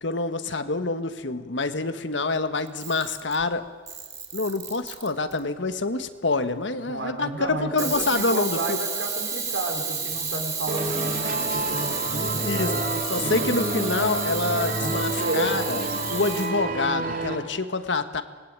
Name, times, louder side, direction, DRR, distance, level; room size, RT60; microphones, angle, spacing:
voice 1, 0.0-3.6 4.3-8.8 12.4-12.7 13.1-15.8 16.1-18.2, left 3 dB, 75° left, 10 dB, 1.5 m, -27 dB
Camera, 2.7-3.4 3.9-5.4 7.8-16.5, right 5 dB, 20° right, 3.9 m, -31 dB
voice 2, 6.8-12.9 13.2-13.5 14.8-15.6, right 1 dB, 75° right, 3 dB, 4.2 m, -32 dB
sound 1, 10.7-17.4, right 1 dB, 45° right, 3.0 m, -29 dB
25.0 x 20.0 x 8.9 m, 1.5 s
head